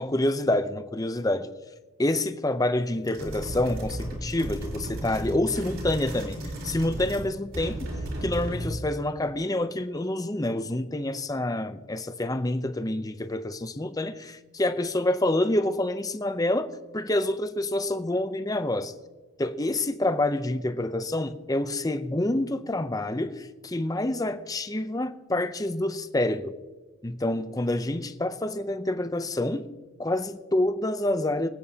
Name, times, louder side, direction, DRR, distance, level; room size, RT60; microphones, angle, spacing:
voice 1, 0.0-1.5 2.0-6.4 6.6-7.9 8.2-18.9 19.4-26.5 27.0-29.7 30.0-31.5, left 1 dB, 15° left, 0.5 m, -27 dB
sound 1, 3.0-7.3 7.5-8.8, right 1 dB, 70° right, 4.2 m, -34 dB
25.5 x 9.1 x 2.8 m
head